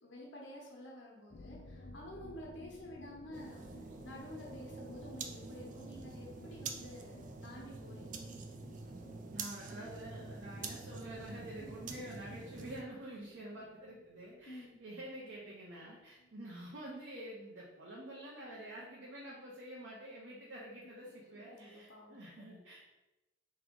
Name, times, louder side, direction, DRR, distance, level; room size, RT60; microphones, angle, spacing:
voice 1, 0.0-3.7 4.0-8.2 11.6-11.9 14.5-14.7 21.3-22.2, left 1 dB, 90° left, -2 dB, 1.1 m, -50 dB
sound 1, 1.3-16.7 16.9-17.1 17.4-17.5, left 1 dB, 45° left, 0.4 m, -58 dB
sound 2, 3.3-12.8, right 4 dB, 45° right, 0.4 m, -46 dB
voice 2, 9.3-22.8, right 1 dB, 85° right, -5 dB, 0.8 m, -48 dB
3.5 x 3.2 x 3.8 m, 1.0 s
head